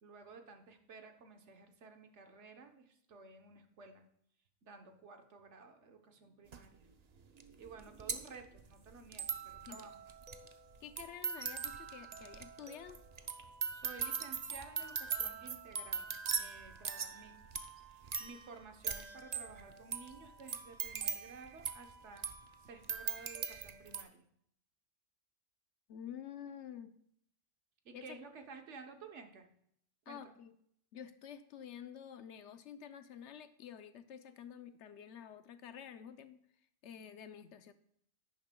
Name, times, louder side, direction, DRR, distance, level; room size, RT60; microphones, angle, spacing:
voice 1, 0.0-4.1 4.6-10.0 13.7-16.1 16.4-17.4 17.8-22.3 22.6-24.2 27.8-29.5 30.1-30.4, right 4 dB, 75° right, 6 dB, 1.3 m, -54 dB
sound 1, 6.5-6.6 7.4-7.5 7.7-24.0, right 6 dB, 45° right, 0.6 m, -41 dB
voice 2, 10.8-13.0 25.9-26.9 27.9-28.0 30.1-30.5 30.9-36.4 36.8-37.7, left 9 dB, 75° left, 10 dB, 0.9 m, -49 dB
11.0 x 9.5 x 2.2 m, 0.70 s
omnidirectional pair, 1.2 m